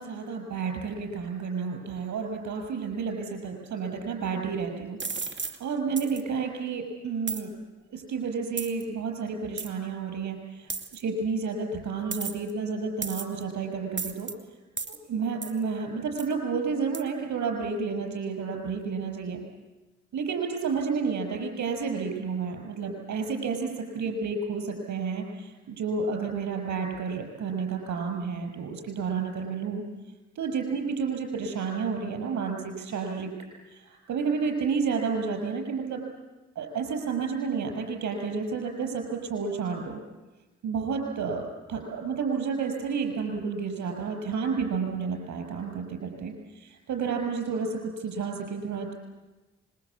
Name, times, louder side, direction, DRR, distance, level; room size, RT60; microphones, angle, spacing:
voice 1, 0.0-7.5 7.9-14.3 14.8-19.4 20.1-29.8 30.3-33.3 33.7-36.0 36.5-40.0 40.6-48.9, right 5 dB, 70° right, 4 dB, 6.3 m, -31 dB
sound 1, 5.0-5.6 6.0-6.2 7.3-7.4 8.6-8.8 9.6-9.7 10.7-11.0 12.1-12.5 13.0-13.4 14.0-14.3 14.8-15.0 15.4-15.6 16.2-16.3 16.9-17.0, right 4 dB, 40° right, 2.5 m, -33 dB
25.5 x 22.0 x 8.4 m, 1.1 s
hypercardioid pair, 40°, 29 cm